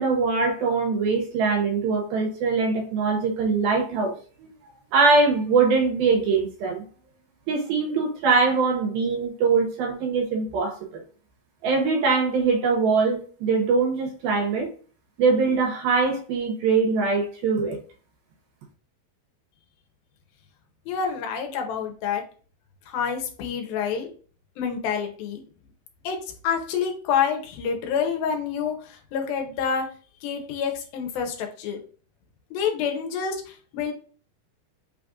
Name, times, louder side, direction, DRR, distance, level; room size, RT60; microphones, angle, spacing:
voice 1, 0.0-4.1 4.4-4.5 4.9-6.8 7.5-11.0 11.6-14.7 15.2-17.8, right 4 dB, 80° right, 3 dB, 2.7 m, -22 dB
voice 2, 20.9-22.2 22.9-24.1 24.6-25.4 26.0-26.2 26.4-29.9 30.2-31.8 32.5-33.9, left 7 dB, 75° left, 4 dB, 2.5 m, -27 dB
5.9 x 2.5 x 3.6 m, 0.40 s
omnidirectional pair, 4.4 m